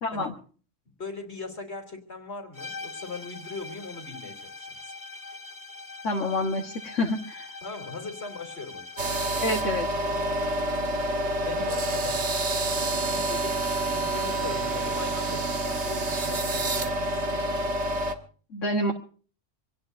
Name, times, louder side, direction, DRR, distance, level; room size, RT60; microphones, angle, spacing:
voice 1, 0.0-0.3 6.0-7.5 9.4-9.9 18.5-18.9, left 1 dB, 85° left, 1 dB, 1.9 m, -28 dB
voice 2, 1.0-4.9 7.6-8.9 11.4-12.3 13.0-17.2, left 3 dB, 60° left, 5 dB, 3.3 m, -40 dB
sound 1, 2.5-10.0, left 3 dB, 15° left, 1.5 m, -42 dB
sound 2, 9.0-18.1, right 1 dB, 65° right, 1.9 m, -28 dB
26.0 x 18.0 x 2.6 m, 0.42 s
omnidirectional pair, 1.3 m